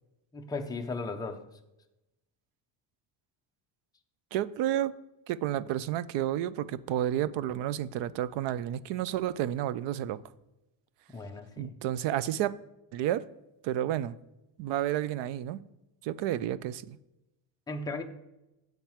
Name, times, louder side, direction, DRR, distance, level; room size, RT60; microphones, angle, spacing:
voice 1, 0.3-1.4 11.1-11.8 17.7-18.0, left 3 dB, 10° left, 0.4 m, -36 dB
voice 2, 4.3-4.9 5.3-10.2 11.6-12.5 12.9-13.2 13.6-14.2 14.6-15.6 16.0-17.0, right 12 dB, 60° right, 0.5 m, -31 dB
7.9 x 4.5 x 7.2 m
cardioid pair, 160°, 50 cm